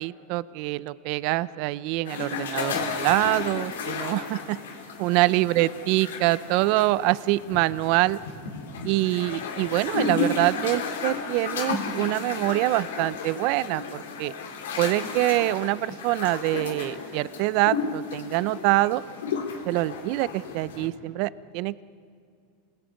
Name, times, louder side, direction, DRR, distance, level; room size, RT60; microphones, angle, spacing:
voice 1, 0.0-4.6 5.0-8.2 8.8-14.3 14.8-19.0 19.7-21.8, right 18 dB, 55° right, 19 dB, 0.6 m, -25 dB
sound 1, 2.0-20.9, left 5 dB, 90° left, 3.4 m, -33 dB
27.0 x 20.0 x 9.3 m, 2.3 s
supercardioid pair, 120°, 0 cm